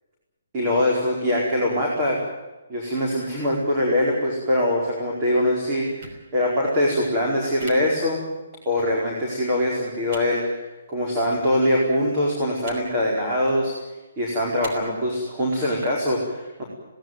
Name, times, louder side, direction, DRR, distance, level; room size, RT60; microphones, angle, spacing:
voice 1, 0.5-2.2 2.7-8.2 8.6-13.7 14.2-16.6, left 1 dB, 15° right, -3 dB, 4.7 m, -23 dB
sound 1, 6.0-6.2 7.6-7.7 8.8-8.9 10.1-10.2 11.3-11.4 12.6-12.8 13.3-13.6 14.6-14.7, equal, 35° right, 5.4 m, -39 dB
21.0 x 18.5 x 9.3 m, 1.1 s
hypercardioid pair, 175°, 0 cm